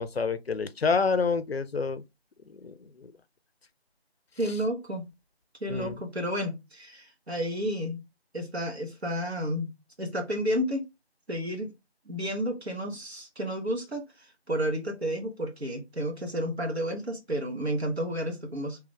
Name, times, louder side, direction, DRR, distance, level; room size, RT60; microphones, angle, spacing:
voice 1, 0.0-2.0 2.6-3.1 5.7-6.0, left 4 dB, 70° left, 0.4 m, -28 dB
voice 2, 4.4-5.1 5.6-8.0 8.3-10.8 11.3-11.7 12.1-14.0 14.5-18.8, equal, 70° right, 1.3 m, -31 dB
2.9 x 2.3 x 3.7 m
figure-of-eight pair, 175°, 33 cm